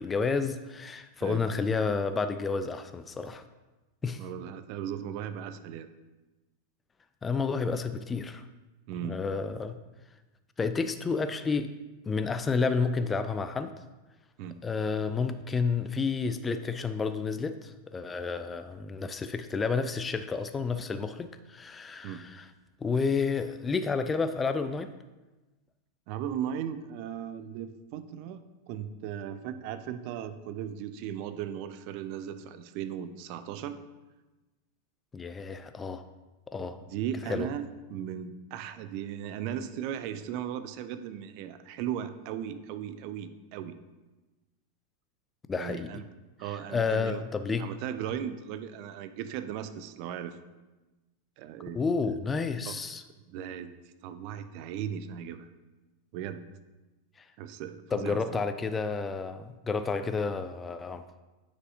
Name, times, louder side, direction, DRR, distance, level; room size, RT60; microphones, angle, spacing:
voice 1, 0.0-3.4 4.0-4.2 7.2-8.4 9.0-9.8 10.6-11.7 12.1-13.7 14.6-22.5 22.8-24.9 35.1-36.0 36.5-36.8 37.3-37.5 45.5-45.9 46.5-47.7 51.7-53.0 57.2-57.3 57.9-61.1, left 4 dB, 15° left, 10 dB, 0.3 m, -30 dB
voice 2, 4.2-5.9 8.9-9.2 14.4-14.6 22.0-22.2 26.1-33.8 36.8-43.8 45.6-46.0 46.4-47.2 47.6-50.4 51.4-51.8 52.7-52.8 53.2-53.7 54.0-55.5 56.1-56.4 57.4-58.4, right 9 dB, 45° right, 11 dB, 0.5 m, -37 dB
9.4 x 5.0 x 2.8 m, 1.1 s
figure-of-eight pair, 90°, 0 cm